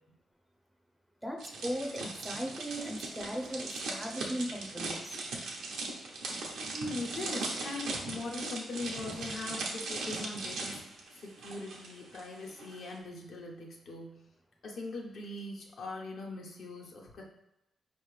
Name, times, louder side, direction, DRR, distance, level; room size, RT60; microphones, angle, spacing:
voice 1, 1.2-5.2, equal, 5° right, 3 dB, 0.5 m, -38 dB
sound 1, 1.4-12.2 12.5-12.8, right 3 dB, 90° right, 0.9 m, -39 dB
voice 2, 6.7-10.8 11.1-14.3 14.6-17.2, left 2 dB, 70° left, -1 dB, 1.0 m, -41 dB
4.8 x 3.2 x 3.2 m, 0.90 s
cardioid pair, 100°, 0 cm